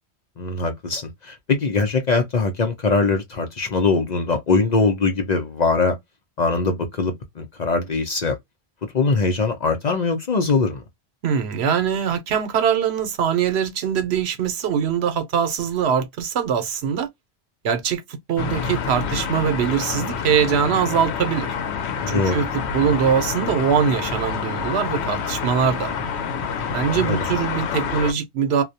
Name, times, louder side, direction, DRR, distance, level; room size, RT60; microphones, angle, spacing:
voice 1, 0.4-6.0 6.4-8.4 8.9-10.8 22.0-22.4 26.6-27.2, left 4 dB, 50° left, 0.6 m, -22 dB
voice 2, 11.2-17.1 17.6-18.0 18.3-21.5 22.1-22.5 22.7-26.0 26.7-28.6, right 7 dB, 75° right, 0.9 m, -22 dB
sound 1, 18.4-28.1, left 6 dB, 80° left, 0.9 m, -27 dB
2.3 x 2.1 x 2.6 m
omnidirectional pair, 1.1 m